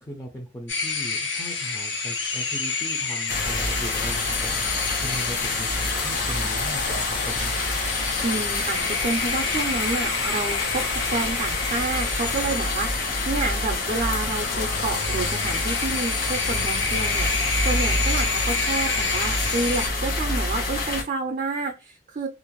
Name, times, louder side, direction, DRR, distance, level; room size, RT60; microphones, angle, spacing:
voice 1, 0.0-4.6 5.0-7.5, equal, 15° left, 0 dB, 0.5 m, -38 dB
sound 1, 0.7-19.9, left 4 dB, 85° left, 0.8 m, -29 dB
sound 2, 3.3-21.0, left 2 dB, 55° left, 1.0 m, -27 dB
voice 2, 8.2-22.3, right 3 dB, 45° right, 3 dB, 0.4 m, -29 dB
2.5 x 2.0 x 3.0 m, 0.31 s
head